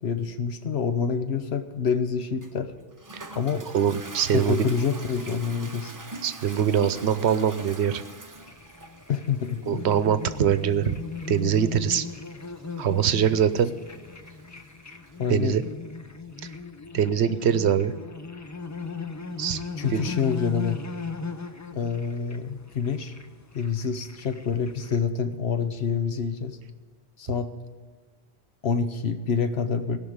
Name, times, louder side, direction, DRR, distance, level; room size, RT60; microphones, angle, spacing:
voice 1, 0.0-2.7 3.3-3.7 4.3-5.9 9.1-9.8 15.2-15.6 19.8-20.8 21.7-23.1 23.5-26.6 27.2-27.5 28.6-30.0, left 6 dB, 75° left, 9 dB, 1.1 m, -27 dB
Toilet flush, 2.4-15.2, right 2 dB, 20° right, 0.7 m, -44 dB
voice 2, 3.7-4.7 6.2-8.0 9.7-10.9 11.3-12.0 12.8-13.7 15.3-15.6 16.9-17.9 19.4-19.6 19.9-20.1, right 8 dB, 85° right, 13 dB, 1.0 m, -23 dB
sound 1, 8.4-25.0, left 4 dB, 20° left, 0.5 m, -38 dB
17.0 x 6.0 x 8.7 m, 1.5 s
omnidirectional pair, 1.1 m